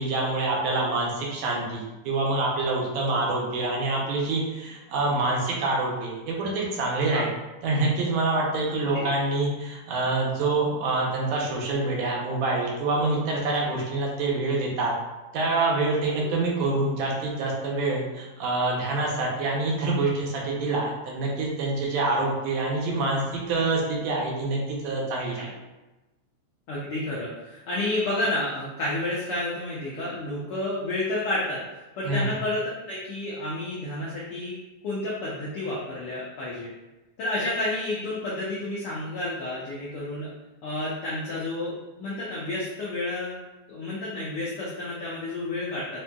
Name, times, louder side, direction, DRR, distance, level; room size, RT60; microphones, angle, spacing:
voice 1, 0.0-7.3 7.6-14.9 15.3-23.2 23.5-25.5 32.1-32.3, right 2 dB, 75° right, -3 dB, 2.0 m, -26 dB
voice 2, 26.7-31.6 32.0-34.5 34.8-36.7 37.2-40.3 40.6-43.4 43.7-46.0, left 2 dB, 85° left, -6 dB, 1.2 m, -30 dB
5.2 x 2.6 x 2.2 m, 1.1 s
omnidirectional pair, 3.4 m